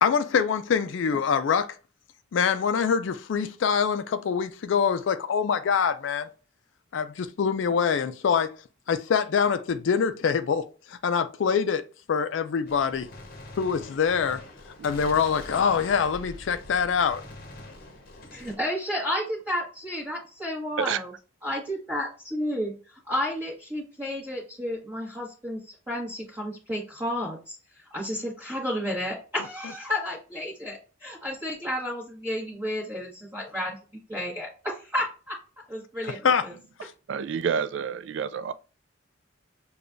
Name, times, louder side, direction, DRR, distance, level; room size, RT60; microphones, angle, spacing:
voice 1, 0.0-1.8 2.3-6.3 6.9-8.6 8.9-11.8 12.1-13.1 13.6-14.4 14.8-17.2 36.0-36.5, left 6 dB, 65° left, 0.4 m, -24 dB
Gunshot gunfire, 12.7-18.5, left 2 dB, 50° left, 0.8 m, -44 dB
voice 2, 18.3-21.1 21.4-33.8 34.1-35.4 35.7-36.5, left 1 dB, 15° right, 1.1 m, -32 dB
voice 3, 37.1-38.5, right 7 dB, 60° right, 0.3 m, -28 dB
6.7 x 2.3 x 2.5 m
head